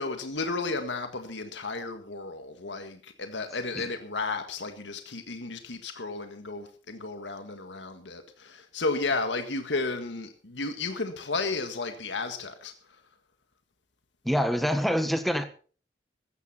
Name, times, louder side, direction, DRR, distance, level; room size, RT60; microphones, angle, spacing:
voice 1, 0.0-13.0, left 3 dB, 85° left, 7 dB, 1.7 m, -33 dB
voice 2, 14.2-15.4, equal, ahead, 8 dB, 1.5 m, -25 dB
15.5 x 13.5 x 4.3 m, 0.39 s
head